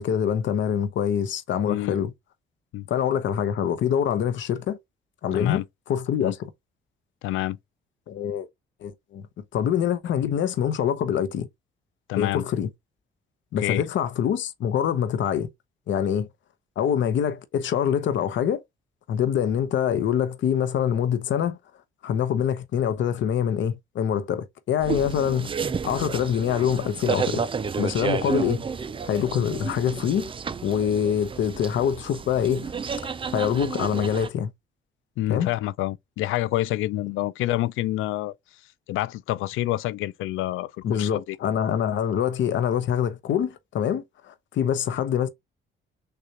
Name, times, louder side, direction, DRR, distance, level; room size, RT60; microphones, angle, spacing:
voice 1, 0.0-2.1 2.9-4.8 5.2-5.6 5.9-6.4 8.1-8.5 8.8-9.2 9.5-11.5 12.2-12.7 13.5-15.5 15.9-16.3 16.8-18.6 19.1-21.6 22.0-25.5 25.8-27.4 27.8-28.6 29.0-30.3 30.6-32.7 33.3-34.5 35.3-35.5 40.8-45.3, left 9 dB, 70° left, 0.8 m, -25 dB
voice 2, 1.6-2.0 2.7-2.9 5.3-5.6 6.2-6.3 7.2-7.6 12.1-12.5 13.6-13.8 35.2-38.3 38.9-40.7 41.0-41.4, left 15 dB, 90° left, 0.4 m, -27 dB
sound 1, 24.8-34.3, right 6 dB, 25° right, 0.4 m, -31 dB
6.6 x 2.4 x 2.8 m
cardioid pair, 90°, 20 cm